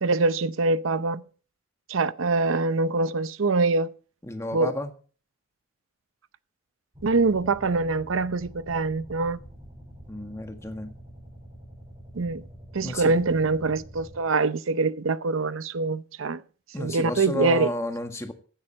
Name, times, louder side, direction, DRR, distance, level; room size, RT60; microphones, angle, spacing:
voice 1, 0.0-1.2 1.9-3.9 4.5-4.7 7.0-9.4 12.1-12.4 12.7-16.4 16.8-17.7, right 3 dB, 85° right, 0.7 m, -24 dB
voice 2, 4.2-4.9 10.1-10.9 12.8-13.1 16.7-18.3, left 1 dB, 15° left, 1.6 m, -31 dB
sound 1, 6.9-14.2, equal, 25° right, 5.8 m, -46 dB
15.5 x 11.5 x 4.2 m
head